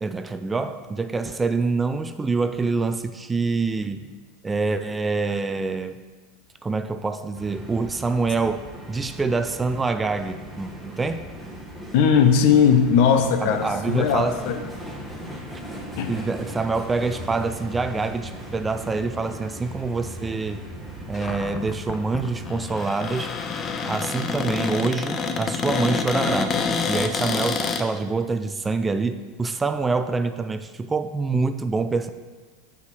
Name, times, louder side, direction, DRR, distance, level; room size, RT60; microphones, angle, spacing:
voice 1, 0.0-4.1 4.4-6.0 6.6-11.2 13.4-14.4 16.1-20.6 21.1-23.3 23.8-32.1, right 4 dB, 15° right, 10 dB, 0.3 m, -26 dB
sound 1, 7.3-22.6, equal, ahead, 1.3 m, -38 dB
voice 2, 11.9-14.6 16.0-16.2 27.3-27.4, left 7 dB, 65° left, 7 dB, 0.8 m, -19 dB
Cupboard open or close, 21.1-27.8, left 5 dB, 30° left, 0.6 m, -27 dB
5.5 x 5.0 x 6.1 m, 1.4 s
supercardioid pair, 125°, 0 cm